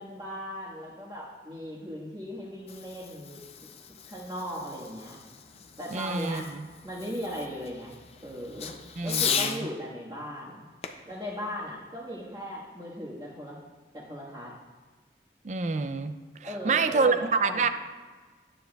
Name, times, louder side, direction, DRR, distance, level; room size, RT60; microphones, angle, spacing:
voice 1, 0.0-3.4 4.0-5.2 5.8-6.5 6.8-7.9 8.2-8.7 9.0-10.6 11.0-13.6 13.9-14.5 16.4-17.7, equal, 25° right, -8 dB, 1.4 m, -38 dB
Fireworks, 2.4-9.6 10.8-12.5, left 7 dB, 35° left, 0.5 m, -37 dB
voice 2, 5.9-6.4 9.0-9.5 15.4-16.1 16.4-17.7, right 4 dB, 40° right, 10 dB, 0.4 m, -26 dB
12.0 x 8.9 x 2.3 m, 1.4 s
head